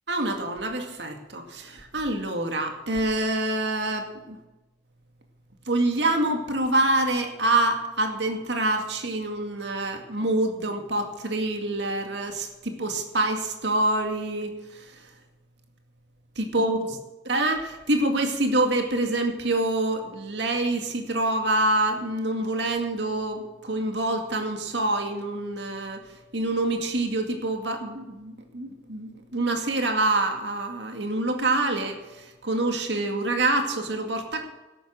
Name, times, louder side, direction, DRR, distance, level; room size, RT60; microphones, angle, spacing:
voice 1, 0.1-4.4 5.7-15.0 16.4-16.8 17.3-26.0 26.3-34.5, right 2 dB, 80° right, 5 dB, 2.1 m, -26 dB
13.0 x 11.5 x 7.4 m, 1.1 s
head